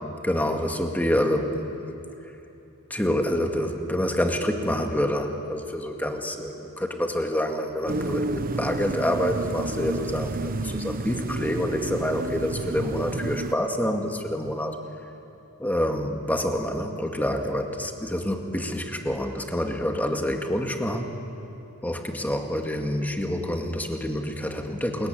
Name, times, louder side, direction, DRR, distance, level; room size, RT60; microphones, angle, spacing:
voice 1, 0.2-1.7 2.9-14.8 15.6-21.1 21.8-25.1, equal, 10° left, 3 dB, 2.1 m, -27 dB
sound 1, 7.9-13.5, right 2 dB, 40° right, 0.9 m, -30 dB
28.5 x 22.0 x 9.4 m, 2.9 s
head